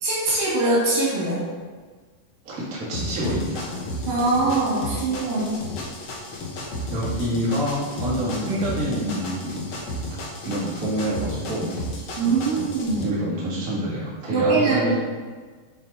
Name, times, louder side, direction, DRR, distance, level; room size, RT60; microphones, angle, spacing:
voice 1, 0.0-1.4 4.1-5.6 12.2-13.1 14.3-14.9, right 3 dB, 75° right, -8 dB, 3.8 m, -22 dB
voice 2, 2.4-3.7 6.9-9.6 10.4-11.7 13.0-15.0, equal, 30° right, -9 dB, 1.8 m, -27 dB
sound 1, 2.9-13.0, left 1 dB, 75° left, 1.2 m, -33 dB
7.2 x 4.1 x 4.1 m, 1.5 s
omnidirectional pair, 3.8 m